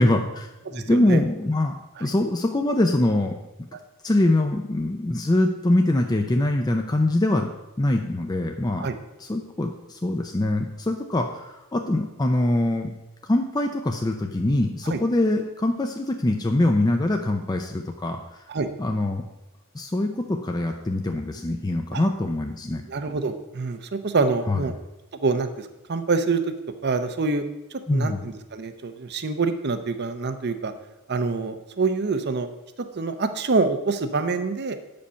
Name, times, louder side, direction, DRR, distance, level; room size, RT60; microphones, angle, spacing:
voice 1, 0.0-1.7 2.0-3.3 4.0-7.5 7.8-8.9 9.2-12.9 13.3-18.2 18.8-19.2 19.7-22.8 24.5-24.6 27.9-28.2, left 1 dB, 20° left, 3 dB, 0.5 m, -23 dB
voice 2, 0.7-1.2 2.0-2.1 8.8-8.9 14.8-15.0 18.5-18.7 21.9-22.1 22.9-24.7 25.2-26.4 26.8-27.4 27.7-30.7 31.1-32.5 32.9-34.8, right 4 dB, 50° right, 9 dB, 0.6 m, -26 dB
8.2 x 5.2 x 5.6 m, 0.97 s
head